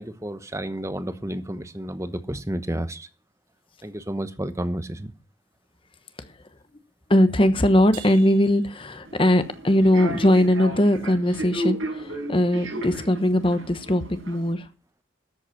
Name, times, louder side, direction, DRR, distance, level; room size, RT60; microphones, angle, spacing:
voice 1, 0.0-3.1 3.8-5.1, right 1 dB, 15° right, 1.0 m, -31 dB
voice 2, 7.1-14.7, left 1 dB, 25° left, 1.1 m, -20 dB
Crash cymbal, 7.9-9.7, right 8 dB, 60° right, 3.8 m, -46 dB
Human voice / Subway metro underground, 9.0-14.5, right 1 dB, 85° right, 6.1 m, -34 dB
13.5 x 8.1 x 5.9 m
head